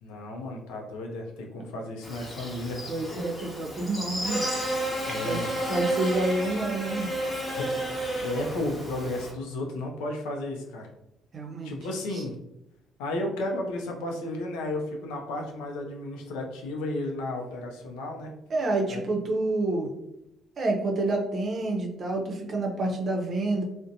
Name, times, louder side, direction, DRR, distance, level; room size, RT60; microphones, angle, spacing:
voice 1, 0.0-2.9 5.1-5.5 7.6-7.7 8.2-10.9 11.6-12.3 13.0-18.3 18.9-19.0, left 1 dB, 85° left, 1 dB, 0.4 m, -33 dB
Buzz, 2.0-9.3, right 1 dB, 25° left, 0.9 m, -32 dB
voice 2, 2.9-4.4 5.2-5.4 5.7-7.1 11.3-11.7 18.5-19.9 20.6-23.6, right 2 dB, 50° right, 1 dB, 0.5 m, -28 dB
2.5 x 2.1 x 2.6 m, 0.84 s
supercardioid pair, 60°, 0 cm